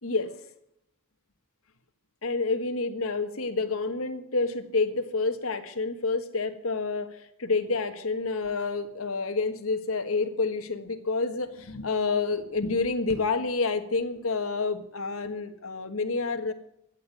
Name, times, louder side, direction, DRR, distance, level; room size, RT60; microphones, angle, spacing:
voice 1, 0.0-0.3 2.2-16.5, left 3 dB, 85° left, 8 dB, 1.6 m, -28 dB
13.5 x 8.9 x 9.1 m, 0.77 s
head